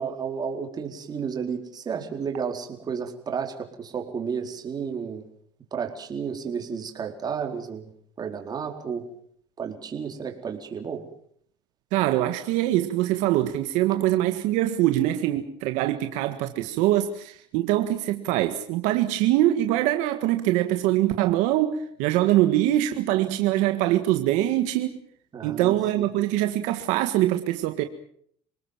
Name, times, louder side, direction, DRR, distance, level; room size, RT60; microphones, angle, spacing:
voice 1, 0.0-5.2 5.7-7.9 8.2-9.0 9.6-11.0 25.3-26.1, right 6 dB, 30° right, 4.4 m, -32 dB
voice 2, 11.9-24.9 25.4-27.8, right 14 dB, 75° right, 1.8 m, -23 dB
27.5 x 19.0 x 7.4 m
cardioid pair, 115°, 13 cm